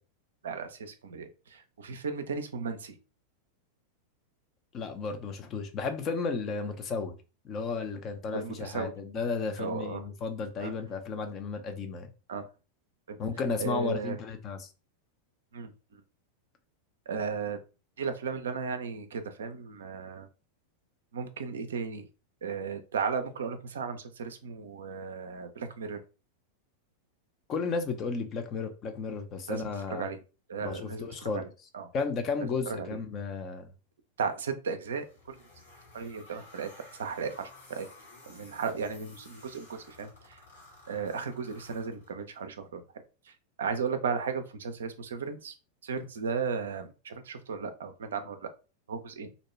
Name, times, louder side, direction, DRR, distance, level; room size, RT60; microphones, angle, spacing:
voice 1, 0.4-3.0 8.3-8.9 9.6-10.1 10.6-10.7 12.3-12.5 13.1-13.2 13.6-14.2 15.5-15.7 17.1-17.6 18.0-20.3 21.1-22.1 22.4-26.0 29.5-29.6 29.9-30.2 30.5-31.5 31.7-31.9 32.7-32.9 34.2-35.4 35.9-36.7 37.0-37.9 38.3-40.4 40.9-42.8 43.3-45.5 45.8-48.5 48.9-49.3, right 5 dB, 65° right, 0.4 m, -35 dB
voice 2, 4.7-7.2 7.4-12.1 13.2-14.7 27.5-30.1 30.6-31.5 31.9-33.7, left 4 dB, 30° left, 0.5 m, -33 dB
sound 1, 34.9-42.4, left 2 dB, 70° left, 1.2 m, -54 dB
2.6 x 2.2 x 3.0 m
figure-of-eight pair, 90°, 0 cm